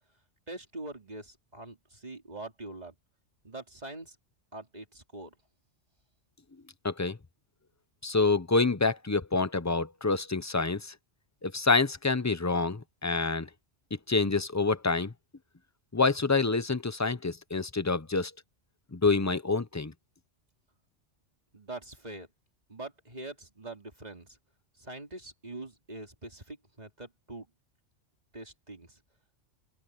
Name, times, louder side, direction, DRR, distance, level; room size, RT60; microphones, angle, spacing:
voice 1, 0.5-2.9 3.4-4.2 4.5-5.3 21.5-22.3 22.7-24.4 24.8-27.5 28.3-29.0, right 2 dB, 35° right, 3.0 m, -43 dB
voice 2, 6.8-7.2 8.0-10.9 11.4-13.5 14.1-15.1 15.9-18.3 18.9-19.9, left 3 dB, 15° left, 0.7 m, -27 dB
open air
omnidirectional pair, 1.2 m